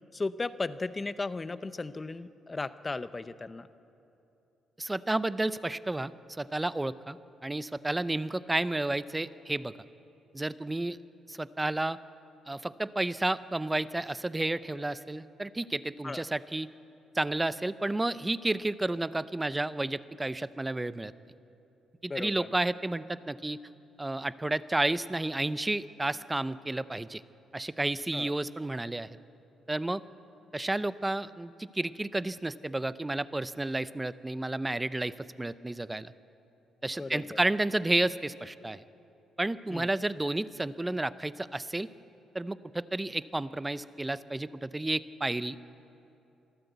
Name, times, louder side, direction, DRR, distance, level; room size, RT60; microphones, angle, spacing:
voice 1, 0.1-3.7 16.0-16.2 22.1-22.5 28.1-28.3 37.0-37.4 39.7-39.9, left 3 dB, 25° left, 14 dB, 0.7 m, -36 dB
voice 2, 4.8-6.1 6.4-7.2 7.4-9.7 10.3-11.0 11.3-12.0 12.5-16.7 17.1-21.1 22.0-23.6 24.0-27.2 27.5-29.1 29.7-30.0 30.5-36.1 36.8-38.8 39.4-41.9 42.3-45.7, right 2 dB, 15° right, 16 dB, 0.6 m, -31 dB
24.0 x 13.5 x 8.1 m, 2.8 s
cardioid pair, 90°, 0 cm